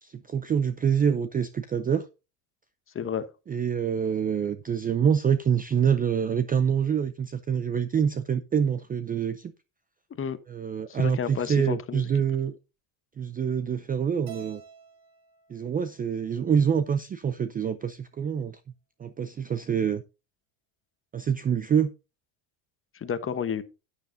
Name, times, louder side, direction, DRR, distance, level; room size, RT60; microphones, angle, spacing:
voice 1, 0.0-2.0 3.5-9.5 10.5-12.5 13.2-14.6 15.5-18.6 19.0-20.0 21.1-21.9, right 7 dB, 20° right, 0.4 m, -26 dB
voice 2, 2.9-3.3 10.2-10.4 10.9-12.1 22.9-23.6, left 7 dB, 25° left, 1.1 m, -31 dB
Keyboard (musical), 14.3-16.6, right 6 dB, 50° right, 3.8 m, -50 dB
11.5 x 9.7 x 2.7 m
cardioid pair, 125°, 49 cm